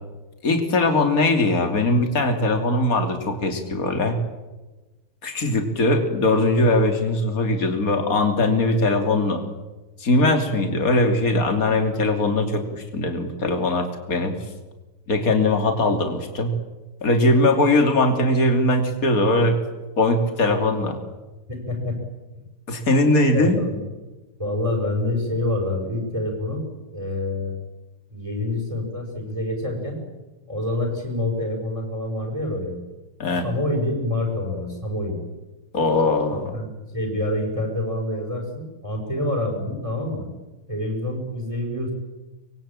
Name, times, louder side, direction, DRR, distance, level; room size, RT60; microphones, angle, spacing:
voice 1, 0.4-4.2 5.2-9.4 10.0-14.3 15.1-16.5 17.0-19.6 20.0-21.0 22.7-23.6 33.2-33.4 35.7-36.5, left 2 dB, 40° left, 5 dB, 3.4 m, -20 dB
voice 2, 21.5-22.0 23.3-23.8 24.4-26.6 26.9-27.5 28.1-30.0 30.5-32.7 33.4-35.2 36.3-40.3 40.7-41.9, left 1 dB, 15° right, 2 dB, 6.1 m, -27 dB
25.0 x 22.5 x 8.9 m, 1.2 s
omnidirectional pair, 2.4 m